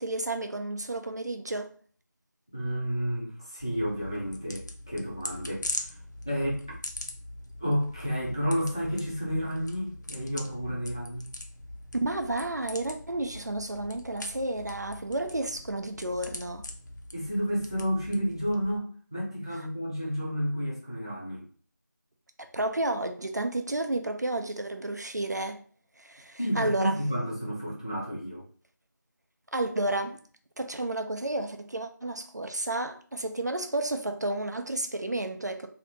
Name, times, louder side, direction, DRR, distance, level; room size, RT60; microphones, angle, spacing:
voice 1, 0.0-1.7 12.0-16.7 22.5-25.6 26.0-27.0 29.5-30.2 30.6-35.7, right 2 dB, 60° right, 0.5 m, -31 dB
voice 2, 2.5-6.0 6.3-6.8 7.6-11.3 17.1-21.5 26.4-28.5, equal, 15° left, 0.5 m, -31 dB
sound 1, 3.6-18.8, left 1 dB, 65° left, 0.6 m, -42 dB
2.8 x 2.5 x 3.5 m
figure-of-eight pair, 170°, 11 cm